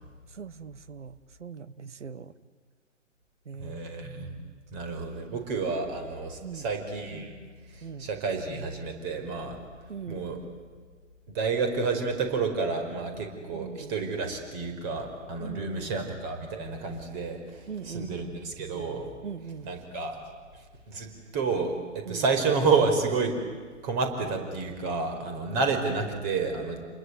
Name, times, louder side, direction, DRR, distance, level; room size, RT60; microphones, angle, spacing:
voice 1, 0.3-2.3 3.4-3.8 6.4-6.7 7.8-8.1 9.9-10.3 13.5-13.9 15.4-16.0 17.7-18.4 19.2-19.7 22.0-22.2, right 6 dB, 70° right, 15 dB, 1.4 m, -40 dB
voice 2, 3.6-4.3 4.7-7.3 7.7-9.6 10.1-10.4 11.3-19.1 19.6-20.2 20.5-23.4 23.8-26.8, right 4 dB, 35° right, 6 dB, 4.9 m, -30 dB
29.0 x 21.0 x 9.7 m, 1.5 s
figure-of-eight pair, 120°, 37 cm